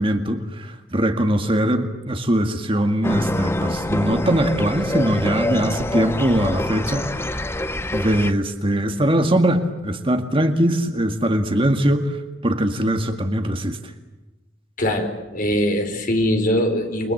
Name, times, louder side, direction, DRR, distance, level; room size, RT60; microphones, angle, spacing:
voice 1, 0.0-7.4 7.9-12.2 12.4-13.8, right 1 dB, 30° right, 6 dB, 2.0 m, -21 dB
sound 1, 3.0-8.3, left 1 dB, 15° left, 0.8 m, -25 dB
voice 2, 14.8-17.1, equal, 45° left, 5 dB, 4.9 m, -22 dB
29.0 x 23.5 x 8.0 m, 1.1 s
head